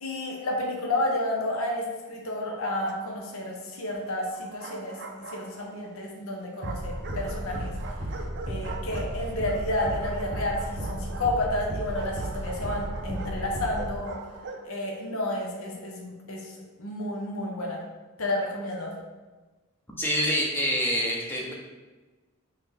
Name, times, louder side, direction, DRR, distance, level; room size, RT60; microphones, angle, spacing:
voice 1, 0.0-5.0 5.3-7.7 8.5-14.1 14.6-16.5 16.8-17.8 18.2-18.9, left 1 dB, 70° left, -1 dB, 0.8 m, -31 dB
Bark, 2.5-3.4 4.3-5.9 6.6-14.7, right 3 dB, 50° right, 0.4 m, -42 dB
sound 1, 6.6-14.0, right 1 dB, 35° right, 0.8 m, -34 dB
voice 2, 20.0-21.5, equal, 10° left, -2 dB, 0.6 m, -26 dB
3.8 x 2.8 x 3.4 m, 1.2 s
head